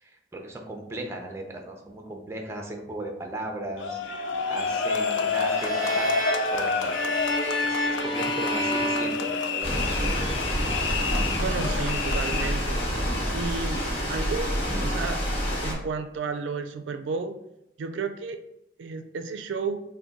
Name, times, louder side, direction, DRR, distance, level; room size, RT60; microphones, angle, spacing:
voice 1, 0.3-4.0 4.5-6.1 6.5-7.3 7.6-10.5, right 1 dB, 15° right, 2 dB, 0.5 m, -37 dB
sound 1, 3.8-12.7, left 4 dB, 90° left, 0.4 m, -29 dB
sound 2, 5.4-10.0, equal, 25° left, 1.0 m, -29 dB
sound 3, 9.6-15.7, equal, 55° left, 1.3 m, -27 dB
voice 2, 11.4-12.8 13.3-13.8 14.1-14.5 14.8-15.2 15.6-17.4 17.8-18.4 18.8-19.8, right 5 dB, 90° right, 7 dB, 0.3 m, -32 dB
3.5 x 2.2 x 3.9 m, 0.81 s
head